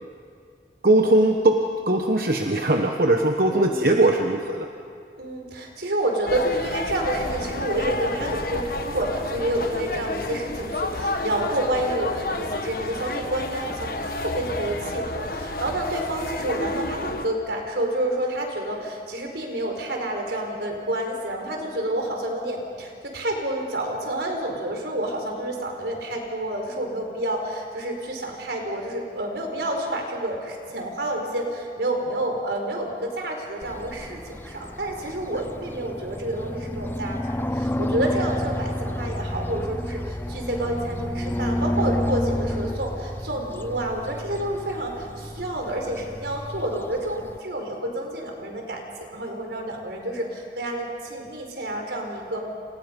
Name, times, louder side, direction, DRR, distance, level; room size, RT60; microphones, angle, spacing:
voice 1, 0.8-1.6 1.9-4.7, right 1 dB, 55° right, 3 dB, 1.2 m, -20 dB
voice 2, 3.5-3.9 5.2-37.2 37.5-48.8 49.1-52.5, right 1 dB, 80° right, 2 dB, 4.6 m, -29 dB
sound 1, 6.3-17.3, left 2 dB, 55° left, 1.5 m, -30 dB
sound 2, 33.6-47.4, left 1 dB, 10° left, 0.6 m, -30 dB
29.0 x 28.5 x 5.4 m, 2.3 s
head